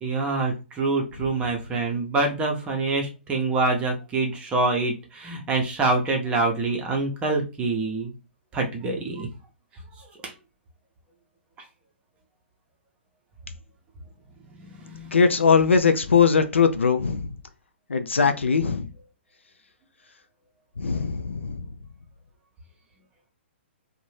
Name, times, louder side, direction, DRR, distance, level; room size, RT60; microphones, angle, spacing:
voice 1, 0.0-8.1 8.5-9.3 10.0-10.3 14.4-15.2 18.2-18.3, right 3 dB, 20° right, 0.6 m, -26 dB
voice 2, 15.1-17.3 17.9-18.9 20.8-21.7, left 5 dB, 90° left, 0.4 m, -20 dB
2.6 x 2.1 x 3.1 m
hypercardioid pair, 130°, 6 cm